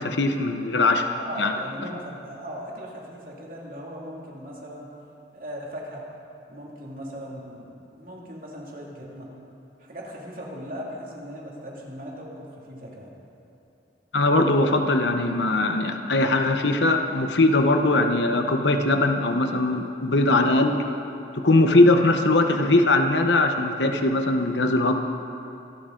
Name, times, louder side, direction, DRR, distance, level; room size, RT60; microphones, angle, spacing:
voice 1, 0.0-1.0 1.4-1.5 14.1-20.8 21.3-24.9, left 2 dB, 75° left, 5 dB, 1.1 m, -20 dB
voice 2, 1.2-4.9 5.3-6.0 6.5-9.3 9.8-13.1 21.6-21.9, equal, 50° right, -3 dB, 2.7 m, -38 dB
25.0 x 12.0 x 3.9 m, 2.9 s
head